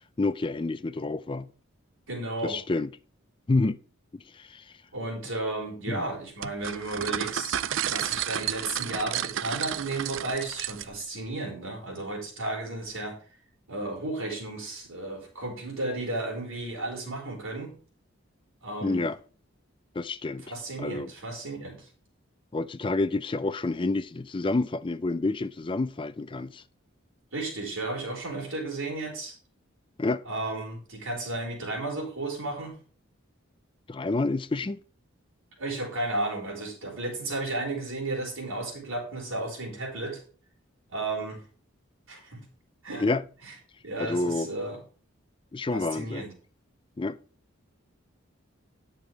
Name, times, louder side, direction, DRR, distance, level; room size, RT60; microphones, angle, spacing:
voice 1, 0.2-1.5 2.4-2.9 3.5-3.8 4.1-4.7 5.9-6.0 18.8-19.2 20.0-20.5 20.8-21.1 22.5-26.6 30.0-30.2 33.9-34.8 43.0-43.2 44.0-44.5 45.5-46.3 47.0-47.2, left 2 dB, 25° left, 0.4 m, -28 dB
voice 2, 2.1-2.6 4.9-13.2 13.7-17.7 18.6-19.1 20.5-21.9 27.3-29.3 30.3-32.8 35.6-40.2 40.9-41.4 42.1-42.4 42.8-43.0 43.8-44.8 45.7-46.3, right 2 dB, 80° right, 4.5 m, -33 dB
sound 1, 6.4-11.1, right 10 dB, 65° right, 0.4 m, -32 dB
9.4 x 6.7 x 4.7 m
head